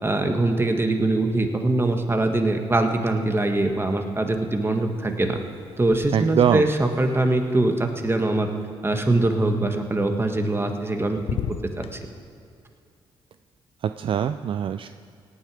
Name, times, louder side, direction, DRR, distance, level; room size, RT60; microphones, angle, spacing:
voice 1, 0.0-5.4 5.8-8.5 8.8-11.2 11.8-12.0, right 2 dB, 20° right, 5 dB, 1.6 m, -23 dB
sound 1, 3.6-4.3 4.5-8.6 10.3-10.9 11.2-12.0, left 8 dB, 70° left, 0.7 m, -38 dB
voice 2, 6.1-6.7 13.8-14.9, right 9 dB, 55° right, 10 dB, 0.4 m, -23 dB
17.5 x 9.3 x 5.0 m, 2.4 s
cardioid pair, 65°, 11 cm